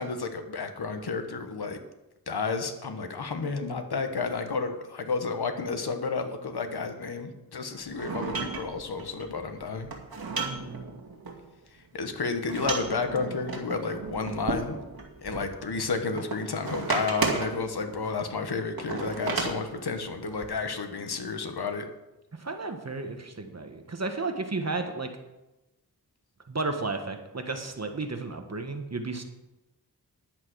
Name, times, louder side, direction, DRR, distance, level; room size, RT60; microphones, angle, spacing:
voice 1, 0.0-1.8 2.3-9.9 11.9-14.8 15.2-21.9, left 4 dB, 90° left, 6 dB, 1.3 m, -31 dB
sound 1, 7.9-11.4 12.3-15.9 16.2-18.1 18.8-20.5, right 4 dB, 65° right, 2.3 m, -34 dB
voice 2, 10.4-10.9 22.3-25.1 26.5-29.2, right 3 dB, 45° right, 6 dB, 1.4 m, -33 dB
10.5 x 8.4 x 6.3 m, 1.0 s
wide cardioid pair, 70°, 38 cm